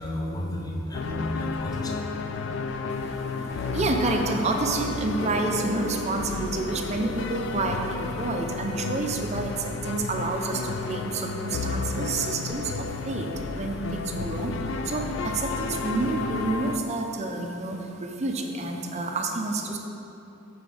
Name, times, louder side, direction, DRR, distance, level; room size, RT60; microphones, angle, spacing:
voice 1, 0.0-2.1, left 1 dB, 20° left, 0 dB, 0.6 m, -32 dB
sound 1, 0.9-16.8, left 4 dB, 60° left, 0.3 m, -32 dB
voice 2, 3.7-13.3 13.5-14.5 14.9-19.8, right 3 dB, 30° right, 3 dB, 0.5 m, -29 dB
8.2 x 4.3 x 3.9 m, 3.0 s
head